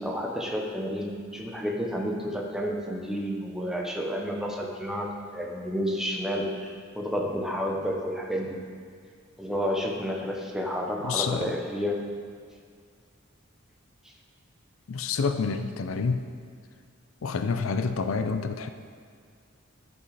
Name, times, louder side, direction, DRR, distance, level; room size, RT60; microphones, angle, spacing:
voice 1, 0.0-8.6 9.4-12.0, equal, 5° right, 0 dB, 0.8 m, -30 dB
voice 2, 11.0-11.6 14.9-16.2 17.2-18.7, left 5 dB, 80° left, 9 dB, 0.5 m, -28 dB
11.5 x 5.5 x 4.0 m, 2.1 s
head